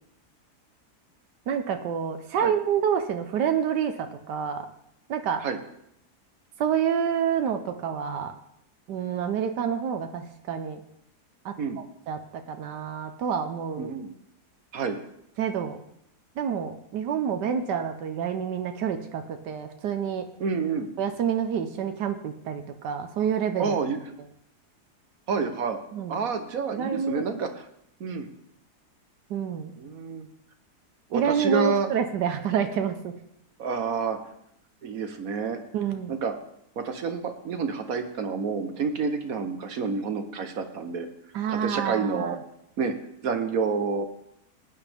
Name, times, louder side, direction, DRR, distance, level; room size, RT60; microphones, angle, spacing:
voice 1, 1.5-4.7 5.1-5.4 6.6-8.3 8.9-10.8 11.4-11.5 12.1-13.9 15.4-15.8 16.4-20.3 21.0-23.7 25.9-26.2 26.7-27.2 29.3-29.7 31.1-33.1 35.7-36.2 41.3-42.3, right 7 dB, 90° right, 7 dB, 1.5 m, -28 dB
voice 2, 13.8-14.1 14.7-15.1 20.4-20.9 23.6-24.0 25.3-25.8 26.1-27.6 28.0-28.3 29.8-30.3 31.1-31.9 33.6-34.2 34.8-35.6 36.1-36.3 36.8-41.1 41.5-42.4 42.8-42.9 43.2-44.1, right 5 dB, 60° right, 7 dB, 1.4 m, -28 dB
18.0 x 10.0 x 3.5 m, 0.74 s
omnidirectional pair, 1.8 m